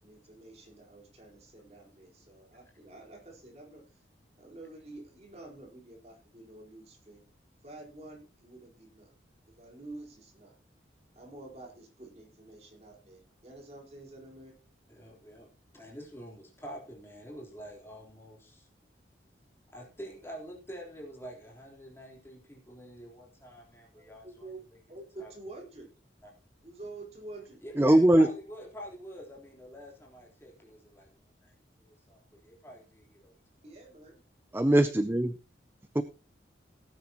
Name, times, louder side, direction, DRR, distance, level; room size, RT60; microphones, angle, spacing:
voice 1, 0.0-3.8 4.4-7.2 7.6-9.1 9.6-10.5 11.1-14.5 23.9-24.6 24.9-25.9 26.6-27.6 33.6-34.2, right 2 dB, 35° right, 0 dB, 4.3 m, -48 dB
voice 2, 14.9-15.5 15.7-18.7 19.7-24.8 25.2-25.3 27.6-33.3, equal, 15° left, -2 dB, 3.7 m, -47 dB
voice 3, 27.8-28.3 34.5-35.3 36.0-36.1, right 1 dB, 10° right, 11 dB, 0.5 m, -21 dB
17.5 x 9.6 x 3.0 m, 0.33 s
head